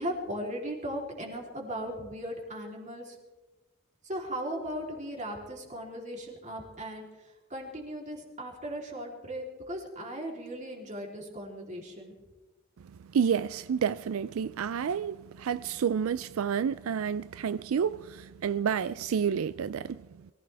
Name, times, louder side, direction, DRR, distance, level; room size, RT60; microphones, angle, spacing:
voice 1, 0.0-3.2 4.0-12.1, equal, 35° right, 3.4 m, -37 dB
voice 2, 13.1-20.0, right 7 dB, 80° right, 0.4 m, -29 dB
23.0 x 15.5 x 3.4 m
head